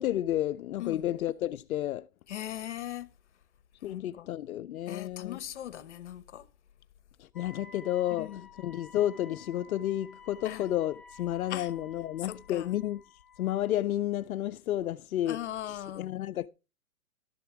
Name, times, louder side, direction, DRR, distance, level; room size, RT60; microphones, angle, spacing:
voice 1, 0.0-2.1 3.8-5.4 7.2-8.3 8.6-13.0 13.4-16.5, left 12 dB, 80° left, 0.5 m, -31 dB
voice 2, 0.8-1.1 2.3-3.1 3.8-4.3 4.9-6.5 8.1-8.5 10.4-10.6 11.5-11.7 12.2-12.8 15.3-16.1, left 12 dB, 55° left, 1.0 m, -39 dB
Wind instrument woodwind instrument, 7.3-13.8, left 5 dB, ahead, 1.9 m, -53 dB
12.0 x 7.0 x 4.7 m
hypercardioid pair, 150°, 42 cm